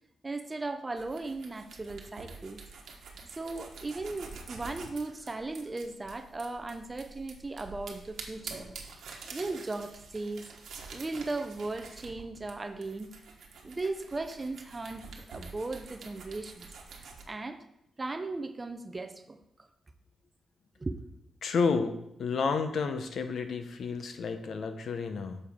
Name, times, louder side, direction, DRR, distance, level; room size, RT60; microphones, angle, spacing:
voice 1, 0.2-2.6 3.4-8.7 9.3-10.4 10.9-13.1 13.6-16.7 17.0-17.6 18.0-19.7 20.8-21.0, right 3 dB, 20° right, 9 dB, 0.6 m, -37 dB
sound 1, 1.0-17.2, right 4 dB, 75° right, 1.2 m, -47 dB
voice 2, 21.4-25.4, left 5 dB, 60° left, 8 dB, 0.8 m, -31 dB
9.1 x 6.8 x 3.6 m, 0.78 s
wide cardioid pair, 145°, 0 cm